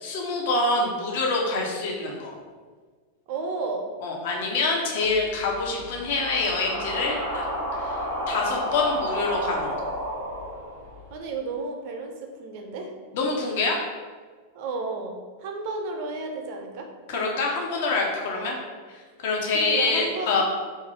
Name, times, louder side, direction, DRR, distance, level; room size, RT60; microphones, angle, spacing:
voice 1, 0.0-2.3 4.0-7.5 7.8-8.0 8.3-9.9 13.1-13.8 17.1-18.6 19.2-20.4, left 3 dB, 50° left, -1 dB, 0.6 m, -26 dB
voice 2, 3.3-3.9 5.6-5.8 11.1-12.9 14.5-16.9 18.3-18.6 19.5-20.4, right 3 dB, 45° right, 2 dB, 0.5 m, -33 dB
sound 1, 5.0-11.2, equal, 75° left, 1.3 m, -31 dB
2.6 x 2.4 x 4.1 m, 1.5 s
figure-of-eight pair, 90°, 0 cm